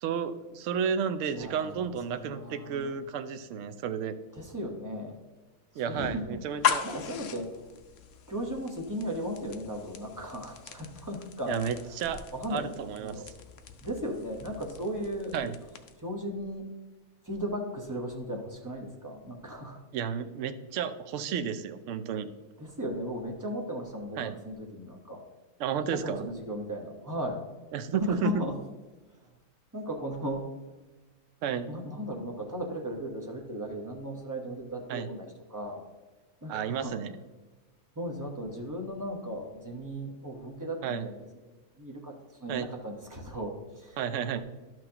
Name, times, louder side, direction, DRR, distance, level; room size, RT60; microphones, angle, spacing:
voice 1, 0.0-4.2 5.8-6.9 11.5-12.3 12.5-13.2 15.3-15.5 19.9-22.3 24.2-24.4 25.6-26.2 27.7-28.3 31.4-31.7 34.9-35.1 36.5-37.1 40.8-41.1 42.5-42.7 44.0-44.4, right 7 dB, 65° right, 10 dB, 0.8 m, -32 dB
voice 2, 1.3-2.9 4.3-5.2 5.7-7.8 8.3-11.6 12.3-12.7 13.0-13.2 13.8-15.3 16.0-16.6 17.2-19.8 22.6-25.2 25.8-27.4 27.9-28.6 29.1-29.3 29.7-30.5 31.7-35.9 36.4-36.9 37.9-42.1 42.4-44.0 44.4-44.5, equal, 15° right, 0 dB, 1.0 m, -36 dB
sound 1, 6.4-16.1, left 8 dB, 60° left, 1.0 m, -38 dB
12.0 x 6.1 x 2.9 m, 1.2 s
omnidirectional pair, 1.6 m